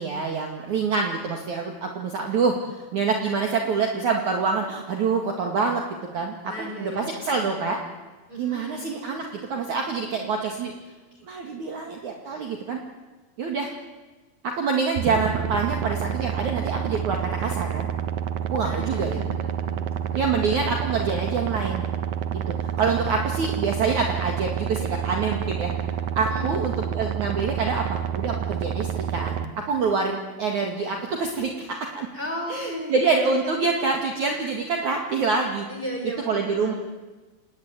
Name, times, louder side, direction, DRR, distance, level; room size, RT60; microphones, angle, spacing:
voice 1, 0.0-5.8 6.1-7.8 8.4-10.7 11.2-12.8 13.4-13.7 14.4-17.9 18.5-19.2 20.1-21.8 22.3-25.7 26.2-29.4 29.7-32.1 32.5-35.7 36.3-36.7, right 4 dB, 50° right, 2 dB, 3.0 m, -26 dB
voice 2, 6.5-7.6 8.3-8.8 18.6-20.2 26.3-26.6 32.1-33.1 35.7-36.7, equal, 10° left, 1 dB, 6.0 m, -35 dB
sound 1, 15.0-29.5, right 9 dB, 90° right, 1.6 m, -28 dB
28.5 x 19.5 x 9.3 m, 1.3 s
omnidirectional pair, 5.2 m